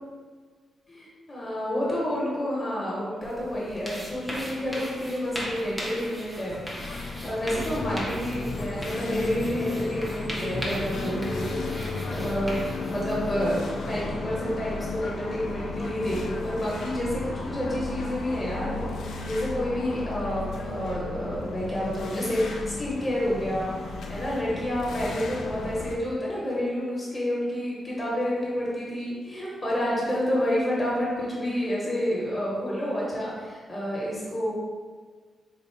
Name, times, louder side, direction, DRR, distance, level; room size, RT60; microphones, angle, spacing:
voice 1, 0.9-11.5 12.1-23.7 24.1-34.5, equal, 20° left, -6 dB, 0.9 m, -29 dB
sound 1, 3.2-13.4, equal, 10° right, 0.5 m, -38 dB
sound 2, 6.8-26.0, left 3 dB, 65° left, 0.4 m, -34 dB
3.9 x 2.0 x 4.3 m, 1.5 s
wide cardioid pair, 170°, 0 cm